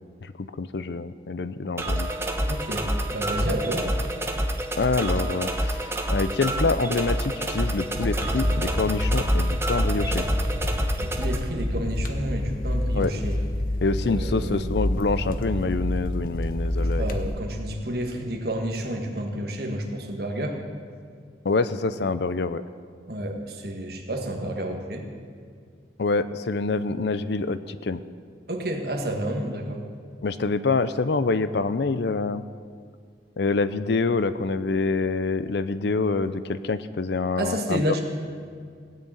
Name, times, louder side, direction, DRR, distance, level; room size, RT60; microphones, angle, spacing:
voice 1, 0.2-2.1 4.8-10.3 12.9-13.1 13.8-17.1 21.4-22.6 26.0-28.0 30.2-32.4 33.4-38.0, left 3 dB, 65° left, 13 dB, 0.5 m, -26 dB
sound 1, 1.8-11.4, right 1 dB, 15° right, 0.8 m, -27 dB
voice 2, 2.5-3.9 11.0-13.4 14.0-14.7 16.8-20.6 23.1-25.0 28.5-29.8 37.4-38.0, right 1 dB, 55° right, 2 dB, 1.7 m, -30 dB
sound 2, 7.9-17.3, left 1 dB, 50° left, 1.0 m, -28 dB
17.0 x 6.7 x 8.9 m, 2.1 s
head